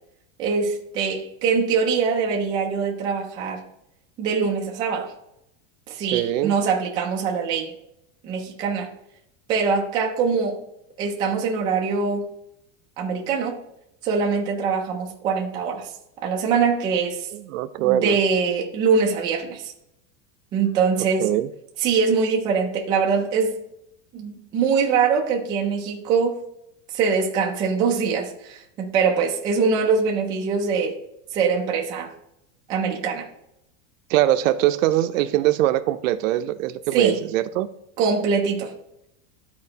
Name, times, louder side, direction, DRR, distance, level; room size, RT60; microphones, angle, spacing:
voice 1, 0.4-3.6 4.2-5.1 5.9-7.7 8.2-8.9 9.5-10.6 11.0-12.3 13.0-13.6 14.0-15.9 16.2-17.3 17.8-19.7 20.5-21.3 21.8-23.6 24.1-26.4 26.9-30.9 31.3-32.1 32.7-33.3 36.9-37.2 38.0-38.7, right 5 dB, 10° right, -1 dB, 0.3 m, -23 dB
voice 2, 6.0-6.6 17.3-18.2 21.2-21.5 34.1-37.7, right 13 dB, 75° right, 11 dB, 0.6 m, -22 dB
12.5 x 4.2 x 2.8 m, 0.81 s
supercardioid pair, 170°, 40 cm